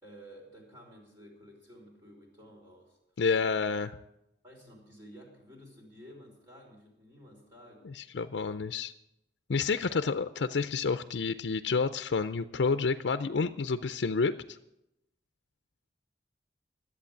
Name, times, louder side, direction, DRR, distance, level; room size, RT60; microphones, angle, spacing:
voice 1, 0.0-3.0 4.4-7.9 9.8-10.0, equal, 25° right, -1 dB, 3.3 m, -53 dB
voice 2, 3.2-4.0 7.8-8.9 9.5-14.6, left 4 dB, 75° left, 10 dB, 0.5 m, -29 dB
13.5 x 8.4 x 8.5 m, 0.86 s
head